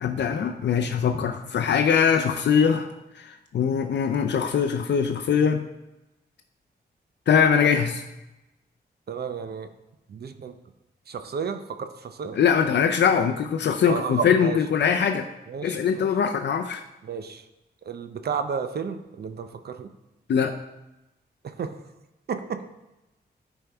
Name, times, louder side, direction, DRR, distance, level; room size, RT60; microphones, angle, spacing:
voice 1, 0.0-2.9 3.2-5.6 7.3-8.0 12.3-15.3 15.6-16.8 20.3-20.5, left 7 dB, 80° left, 5 dB, 0.5 m, -22 dB
voice 2, 9.1-9.7 10.1-10.5 11.1-12.4 13.9-14.6 15.5-16.1 17.0-17.4 17.8-19.9 21.4-21.7 22.3-22.6, right 6 dB, 65° right, 9 dB, 0.5 m, -32 dB
10.0 x 4.5 x 3.4 m, 0.99 s
wide cardioid pair, 155°, 18 cm